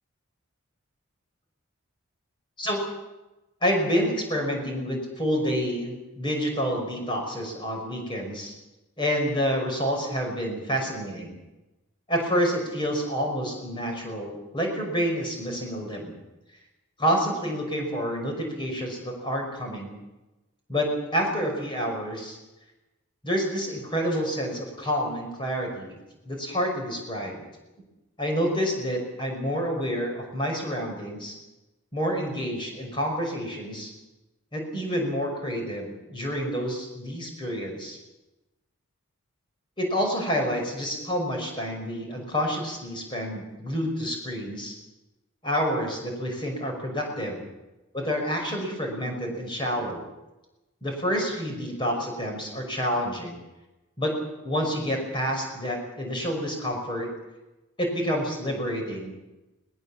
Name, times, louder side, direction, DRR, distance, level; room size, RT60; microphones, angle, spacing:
voice 1, 3.6-8.5 9.0-11.4 12.1-16.2 17.0-20.0 20.7-22.4 23.2-26.0 26.3-27.4 28.2-31.4 31.9-33.9 34.5-38.0 39.8-44.8 45.4-47.5 47.9-50.0 50.8-53.4 54.0-54.1 54.4-57.1 57.8-59.2, equal, 20° left, 1 dB, 5.7 m, -28 dB
21.0 x 20.0 x 7.3 m, 1.0 s
head